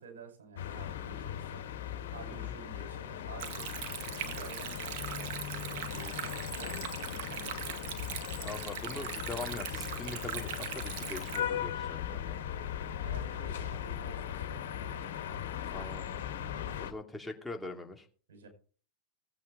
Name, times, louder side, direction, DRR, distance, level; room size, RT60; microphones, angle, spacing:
voice 1, 0.0-1.7 2.1-3.7 4.0-8.3 11.4-11.7 12.8-15.6 16.6-16.9 18.3-18.5, right 3 dB, 75° right, 5 dB, 5.2 m, -51 dB
sound 1, 0.6-16.9, left 9 dB, 75° left, 1.7 m, -38 dB
Stream, 3.4-11.4, right 9 dB, 60° right, 1.9 m, -40 dB
voice 2, 8.4-12.4 15.7-16.1 16.8-18.1, left 3 dB, 5° left, 2 dB, 2.7 m, -42 dB
18.5 x 8.5 x 3.9 m, 0.41 s
hypercardioid pair, 100°, 0 cm